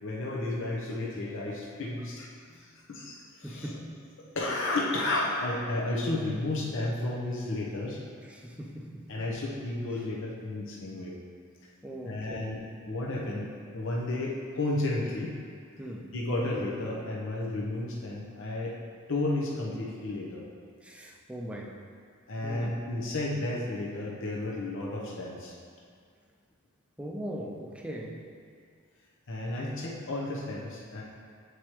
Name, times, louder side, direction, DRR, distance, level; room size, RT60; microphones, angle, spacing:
voice 1, 0.0-3.7 4.3-8.0 9.1-11.1 12.0-12.6 12.9-15.3 16.1-18.7 19.1-20.4 22.3-25.5 29.3-31.0, left 2 dB, 65° left, -4 dB, 0.8 m, -32 dB
voice 2, 3.4-3.9 8.3-9.0 11.8-12.5 15.8-16.1 20.8-21.8 22.4-22.7 27.0-28.2, equal, 5° right, 0 dB, 0.5 m, -39 dB
8.1 x 4.7 x 3.0 m, 2.1 s
head